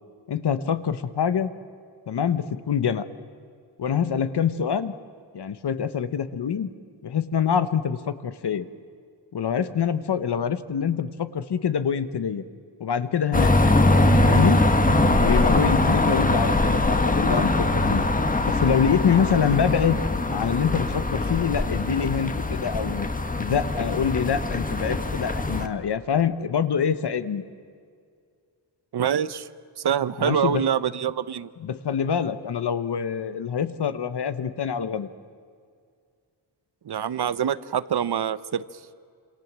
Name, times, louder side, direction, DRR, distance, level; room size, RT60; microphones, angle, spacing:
voice 1, 0.3-1.5 2.1-3.0 3.8-4.9 5.3-6.7 7.0-8.6 9.3-12.4 12.8-13.5 14.2-14.6 15.2-18.0 18.4-20.0 20.3-23.1 23.4-27.4 30.2-30.7 31.6-35.1, left 7 dB, 65° left, 12 dB, 1.3 m, -25 dB
sound 1, 13.3-25.7, left 2 dB, 20° left, 1.5 m, -22 dB
voice 2, 28.9-29.5 29.8-31.5 36.8-38.6, right 9 dB, 60° right, 16 dB, 0.9 m, -25 dB
28.5 x 27.0 x 7.5 m, 2.1 s
wide cardioid pair, 165°, 44 cm